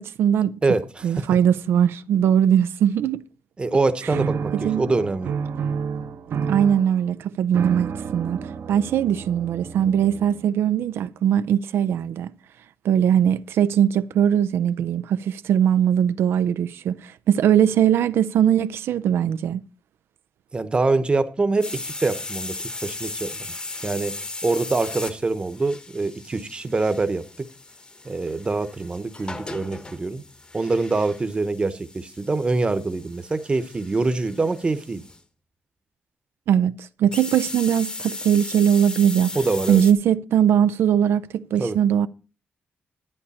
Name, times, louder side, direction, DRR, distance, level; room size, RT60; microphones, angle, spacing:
voice 1, 0.0-0.6 1.0-3.3 4.6-4.8 6.5-12.3 12.8-19.6 36.5-39.3 39.7-42.1, right 9 dB, 90° right, 0.4 m, -20 dB
voice 2, 0.6-1.3 3.6-5.3 20.5-22.6 22.8-23.6 23.8-27.5 28.0-30.2 30.5-35.0 39.3-39.8 41.6-41.8, right 3 dB, 25° right, 0.9 m, -24 dB
sound 1, 4.1-10.6, right 6 dB, 70° right, 1.0 m, -30 dB
sound 2, 21.6-35.2 37.1-39.9, left 2 dB, 25° left, 1.0 m, -37 dB
11.0 x 9.7 x 4.2 m
cardioid pair, 120°, 4 cm